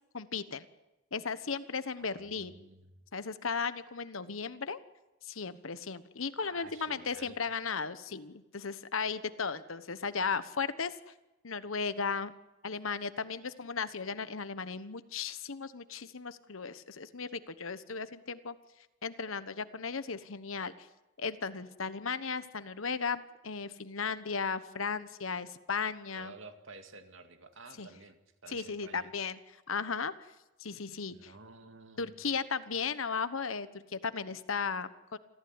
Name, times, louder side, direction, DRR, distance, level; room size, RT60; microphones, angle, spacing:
voice 1, 0.1-0.7 1.1-2.5 3.1-4.8 5.2-11.0 11.4-12.3 12.6-18.6 19.0-20.9 21.2-26.3 27.8-27.9 28.5-29.4 29.7-30.3 30.6-31.3 32.0-35.2, left 5 dB, 85° left, 13 dB, 1.2 m, -36 dB
voice 2, 2.0-3.1 6.4-7.4 26.1-29.1 31.1-32.2, right 3 dB, 75° right, 7 dB, 2.2 m, -52 dB
27.5 x 15.0 x 9.7 m, 1.0 s
head